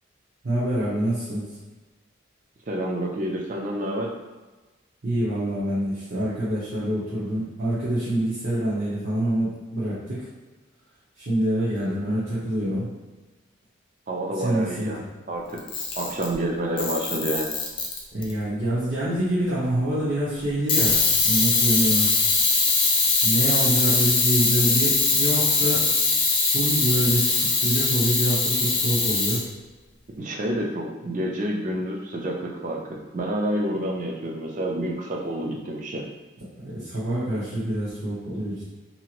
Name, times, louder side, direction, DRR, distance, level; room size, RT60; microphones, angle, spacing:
voice 1, 0.4-1.5 5.0-10.3 11.2-12.9 14.3-14.9 18.1-21.0 21.2-22.1 23.2-25.8 26.5-29.4 36.6-38.6, right 1 dB, 60° right, -11 dB, 0.8 m, -26 dB
voice 2, 2.7-4.1 14.1-15.0 15.3-15.6 16.0-17.6 30.2-36.1, right 1 dB, 40° right, 0 dB, 0.4 m, -28 dB
Camera, 15.6-16.3 16.8-18.3 20.7-29.4, left 3 dB, 25° left, 0.4 m, -22 dB
2.8 x 2.5 x 2.9 m, 1.2 s
head